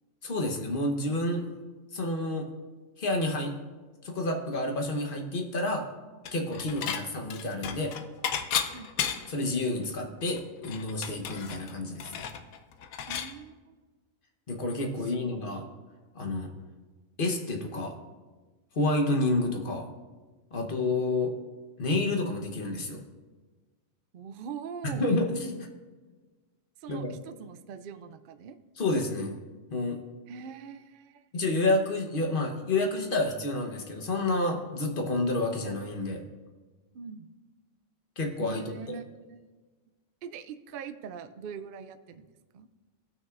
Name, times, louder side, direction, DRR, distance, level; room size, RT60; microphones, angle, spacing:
voice 1, 0.2-1.5 1.9-2.5 3.0-3.5 4.0-5.8 6.3-7.9 9.3-12.2 14.5-15.6 16.1-16.5 17.2-17.9 18.7-19.9 20.5-21.3 21.8-23.0 25.0-25.6 26.9-27.2 28.8-29.3 29.7-30.0 31.3-36.2 38.2-38.7, left 2 dB, 45° left, 3 dB, 1.1 m, -29 dB
Dishes pots and pans / Chink clink, 6.3-7.0 7.3-9.4 9.8-9.9 10.2-13.3, left 8 dB, 90° left, 1.1 m, -33 dB
voice 2, 13.1-13.8 15.0-15.3 24.1-25.1 26.8-28.6 30.3-31.2 36.9-37.3 38.4-39.4 40.2-42.7, right 6 dB, 75° right, 10 dB, 0.5 m, -42 dB
17.5 x 6.2 x 2.5 m, 1.3 s
omnidirectional pair, 1.4 m